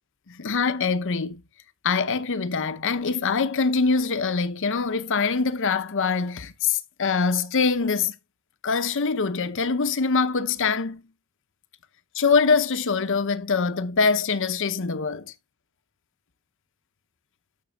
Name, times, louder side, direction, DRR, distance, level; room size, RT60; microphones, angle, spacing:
voice 1, 0.3-1.4 1.8-8.1 8.6-11.0 12.1-15.3, left 4 dB, 60° left, 0.8 m, -24 dB
12.5 x 6.0 x 2.4 m
head